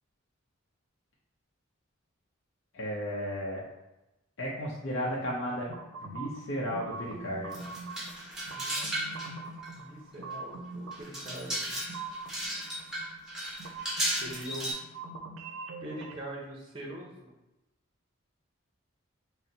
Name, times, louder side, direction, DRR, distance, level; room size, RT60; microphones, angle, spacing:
voice 1, 2.7-3.6 4.4-5.7 6.0-7.6, equal, 70° left, -5 dB, 0.7 m, -34 dB
sound 1, 5.7-16.2, right 3 dB, 85° right, 0.5 m, -43 dB
sound 2, 7.5-9.3 9.6-9.7 10.3-10.4 10.9-14.7, right 1 dB, 5° right, 1.0 m, -35 dB
voice 2, 8.5-11.8 14.1-14.8 15.8-17.3, right 1 dB, 25° right, -3 dB, 0.7 m, -43 dB
4.2 x 2.1 x 3.9 m, 0.98 s
head